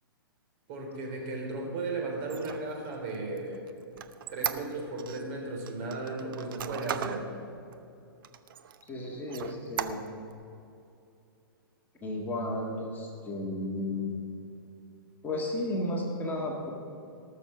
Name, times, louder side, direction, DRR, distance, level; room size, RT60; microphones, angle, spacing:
voice 1, 0.7-3.6 4.3-7.3, right 2 dB, 45° right, 0 dB, 3.6 m, -35 dB
Squeak, 2.2-5.2 5.7-7.2 7.7-7.8 8.2-8.9 9.3-10.3, right 9 dB, 65° right, 0.8 m, -37 dB
voice 2, 8.9-10.0 12.0-14.2 15.2-16.7, left 1 dB, 15° left, -2 dB, 1.8 m, -33 dB
19.0 x 6.6 x 6.1 m, 2.7 s
hypercardioid pair, 125°, 12 cm